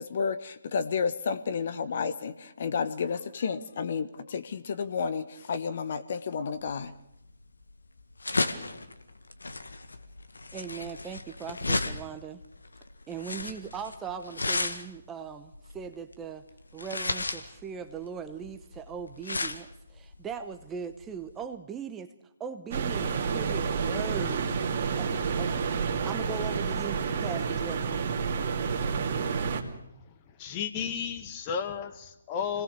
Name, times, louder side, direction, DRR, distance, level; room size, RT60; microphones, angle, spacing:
voice 1, 0.0-6.9, left 5 dB, 50° left, 11 dB, 1.2 m, -31 dB
sound 1, 6.7-21.4, left 2 dB, 75° left, 2.0 m, -34 dB
voice 2, 10.5-12.4 13.1-16.4 16.7-22.1 22.4-25.7 26.0-27.9, right 7 dB, 10° right, 8 dB, 0.9 m, -39 dB
sound 2, 22.7-29.6, right 5 dB, 40° right, 2.6 m, -29 dB
voice 3, 30.4-32.6, left 7 dB, 25° left, 7 dB, 1.9 m, -33 dB
26.0 x 18.5 x 6.8 m, 0.86 s
figure-of-eight pair, 140°, 0 cm